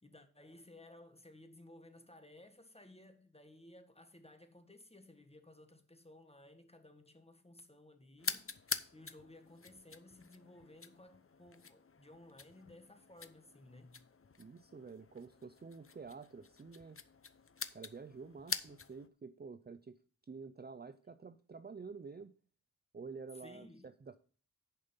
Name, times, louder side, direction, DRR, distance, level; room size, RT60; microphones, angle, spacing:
voice 1, 0.0-14.1 23.3-23.9, left 1 dB, 15° left, 1.6 m, -58 dB
sound 1, 8.2-19.1, left 5 dB, 40° left, 0.7 m, -46 dB
voice 2, 14.4-17.0 17.6-20.0 20.2-22.3 22.9-24.2, right 4 dB, 30° right, 0.5 m, -49 dB
10.5 x 5.3 x 5.5 m
wide cardioid pair, 70°, 36 cm